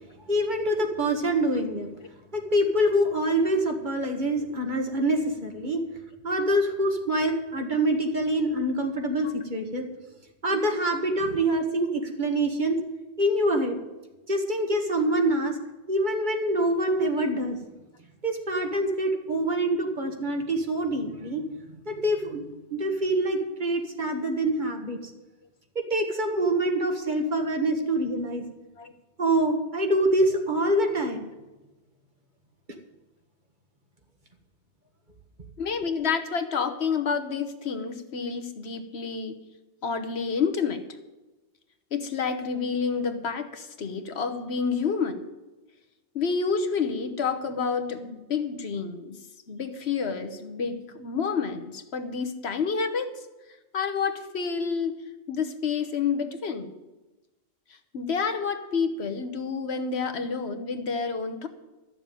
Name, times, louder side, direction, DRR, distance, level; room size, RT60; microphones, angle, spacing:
voice 1, 0.3-1.9 2.3-5.8 6.2-9.8 10.4-12.8 13.2-13.8 14.3-15.6 15.9-17.6 18.2-22.4 22.7-25.1 25.7-28.4 29.2-31.2, right 1 dB, 45° right, 3 dB, 1.7 m, -25 dB
voice 2, 35.6-39.4 39.8-40.8 41.9-45.2 46.1-49.2 49.5-53.2 53.7-55.0 55.3-56.7 57.9-61.5, left 5 dB, 70° left, 6 dB, 1.3 m, -29 dB
13.0 x 6.8 x 9.1 m, 1.1 s
omnidirectional pair, 1.1 m